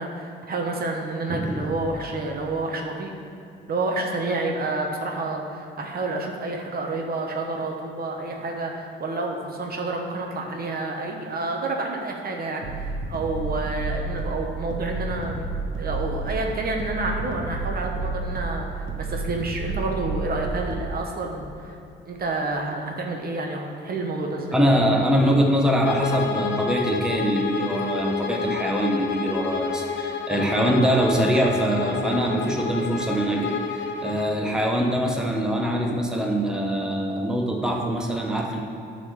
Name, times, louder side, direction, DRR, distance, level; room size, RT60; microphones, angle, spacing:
voice 1, 0.0-3.1 3.7-15.5 15.8-21.8 22.1-24.6, right 2 dB, 50° right, 1 dB, 1.2 m, -29 dB
voice 2, 1.3-1.8 24.5-38.6, equal, 5° right, 0 dB, 1.0 m, -23 dB
sound 1, 12.6-21.0, right 3 dB, 75° right, 1.1 m, -30 dB
Bowed string instrument, 25.8-34.4, left 5 dB, 65° left, 0.8 m, -29 dB
9.7 x 4.1 x 6.5 m, 2.6 s
cardioid pair, 90°, 20 cm